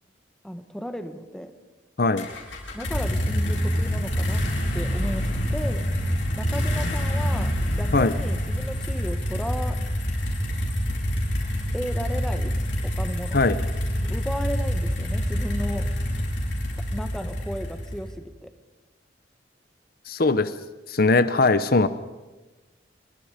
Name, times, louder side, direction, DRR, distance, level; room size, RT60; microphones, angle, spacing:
voice 1, 0.4-1.5 2.7-4.4 4.7-5.8 6.3-9.8 11.7-12.6 12.8-13.4 14.0-15.9 16.9-18.5, equal, 5° left, 7 dB, 1.5 m, -34 dB
sound 1, 2.2-18.1, equal, 80° left, 7.8 m, -26 dB
voice 2, 20.1-20.5 20.9-21.9, left 3 dB, 55° left, 13 dB, 0.9 m, -20 dB
28.0 x 24.0 x 5.1 m, 1.1 s
head